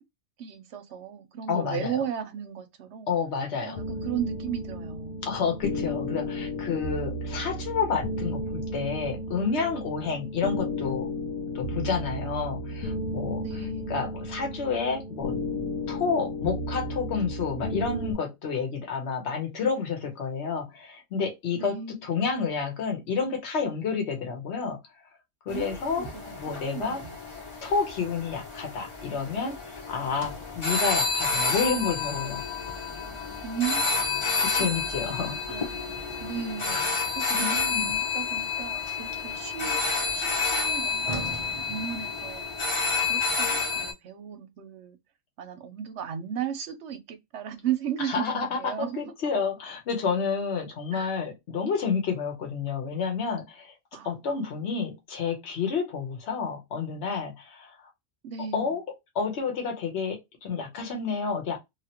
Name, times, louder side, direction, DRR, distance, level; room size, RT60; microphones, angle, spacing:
voice 1, 0.4-3.1 3.6-5.2 13.4-14.0 21.5-22.0 25.5-27.1 33.4-34.1 34.6-34.7 35.5-37.5 37.8-39.8 40.1-42.4 42.9-45.0 45.4-49.0 50.9-51.1 53.9-54.1 58.2-58.7, right 9 dB, 65° right, 0.8 m, -35 dB
voice 2, 1.5-2.0 3.1-3.8 5.2-11.1 11.5-15.3 15.9-24.8 25.4-27.0 27.6-32.4 34.4-35.8 37.3-38.0 41.1-41.3 48.0-53.7 54.0-57.7 58.5-58.8 59.1-61.6, left 5 dB, 60° left, 1.2 m, -30 dB
sound 1, 3.7-18.1, left 1 dB, 75° left, 1.1 m, -33 dB
sound 2, 25.5-43.9, left 4 dB, 25° left, 0.9 m, -30 dB
Sliding door, 30.1-34.3 37.8-42.7, right 2 dB, 35° right, 0.5 m, -46 dB
3.0 x 2.4 x 2.8 m
omnidirectional pair, 1.4 m